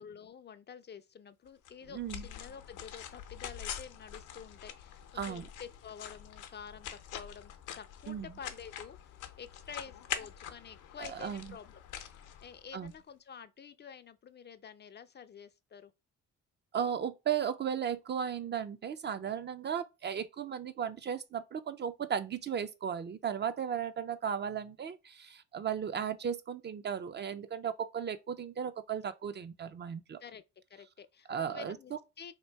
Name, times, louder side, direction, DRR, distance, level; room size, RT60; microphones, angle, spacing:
voice 1, 0.0-15.9 25.9-26.1 30.2-30.4 30.7-32.4, left 7 dB, 35° left, 0.4 m, -49 dB
sound 1, 1.7-13.0, left 9 dB, 85° left, 0.7 m, -45 dB
voice 2, 1.9-2.2 5.2-5.5 8.1-8.3 11.0-11.5 12.7-12.9 16.7-30.2 31.3-32.0, right 8 dB, 35° right, 0.4 m, -36 dB
2.9 x 2.7 x 4.4 m
cardioid pair, 90°, 30 cm